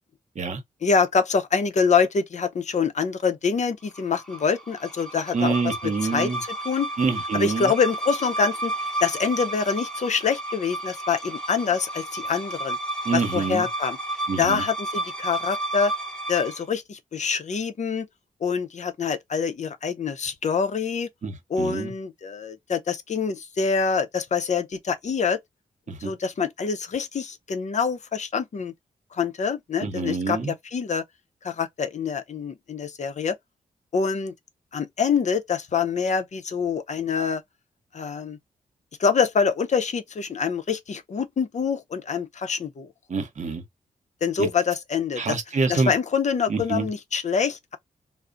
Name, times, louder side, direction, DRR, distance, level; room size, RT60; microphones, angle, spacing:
voice 1, 0.8-5.5 6.1-6.3 6.6-6.9 7.3-8.7 9.0-12.8 13.1-14.0 14.4-15.9 16.3-18.1 18.4-21.1 21.5-25.4 26.0-28.7 29.1-31.0 31.4-33.4 33.9-34.3 34.7-37.4 37.9-38.4 39.0-42.9 44.2-45.4 45.7-47.8, left 5 dB, 50° left, 0.6 m, -25 dB
sound 1, 3.9-16.6, right 2 dB, 5° left, 0.9 m, -32 dB
voice 2, 5.3-6.4 7.0-7.7 13.0-13.7 14.3-14.6 21.2-21.9 25.9-26.1 29.8-30.5 43.1-43.6 44.4-44.5 45.2-45.9 46.5-46.9, right 4 dB, 50° right, 0.9 m, -26 dB
2.4 x 2.0 x 3.7 m
cardioid pair, 60°, 15 cm